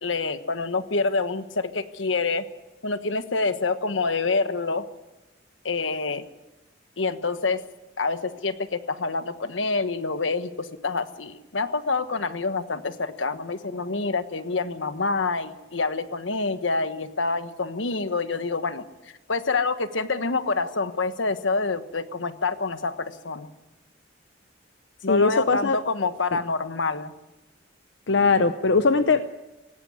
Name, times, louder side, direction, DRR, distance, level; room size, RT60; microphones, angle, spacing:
voice 1, 0.0-2.4 2.8-4.9 5.6-6.2 7.0-7.6 8.0-18.9 19.3-23.5 25.0-27.1, left 3 dB, 90° left, 10 dB, 1.3 m, -27 dB
voice 2, 25.1-25.8 28.1-29.3, left 4 dB, 70° left, 10 dB, 0.8 m, -20 dB
18.0 x 16.5 x 9.6 m, 1.1 s
head